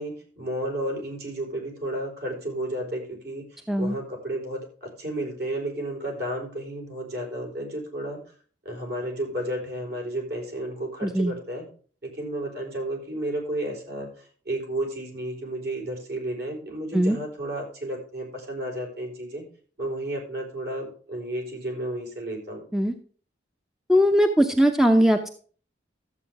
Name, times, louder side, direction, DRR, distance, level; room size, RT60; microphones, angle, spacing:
voice 1, 0.0-8.2 8.6-11.7 12.0-19.4 19.8-22.6, right 1 dB, 60° right, 1 dB, 4.3 m, -32 dB
voice 2, 11.0-11.3 16.9-17.2 22.7-22.9 23.9-25.3, equal, ahead, 5 dB, 0.7 m, -20 dB
13.0 x 8.1 x 3.5 m, 0.43 s
head